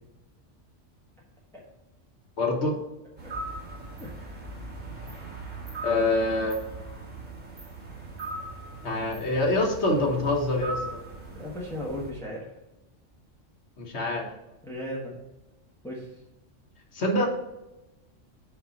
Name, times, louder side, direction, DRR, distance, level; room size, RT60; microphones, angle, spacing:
voice 1, 2.4-2.8 5.8-6.6 8.8-11.0 13.8-14.3 16.9-17.3, left 2 dB, 60° left, 1 dB, 1.6 m, -25 dB
sound 1, 3.2-12.1, right 2 dB, 80° right, 2.1 m, -39 dB
voice 2, 4.0-4.5 11.3-12.5 14.6-15.2 15.8-16.1, left 1 dB, 5° left, -4 dB, 1.3 m, -36 dB
5.6 x 5.6 x 4.1 m, 0.97 s
omnidirectional pair, 1.3 m